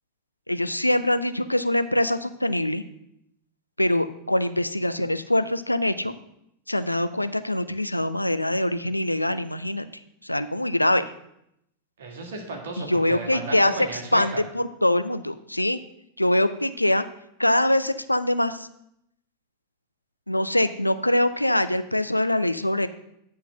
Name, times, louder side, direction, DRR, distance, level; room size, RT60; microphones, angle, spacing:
voice 1, 0.5-2.8 3.8-6.1 6.7-9.8 10.2-11.0 12.8-13.7 14.1-15.8 16.2-17.0 17.4-18.7 20.3-22.9, left 1 dB, 85° left, 11 dB, 0.5 m, -23 dB
voice 2, 12.0-14.4, right 3 dB, 60° right, 2 dB, 2.0 m, -35 dB
9.6 x 4.0 x 6.3 m, 0.77 s
figure-of-eight pair, 90°, 0 cm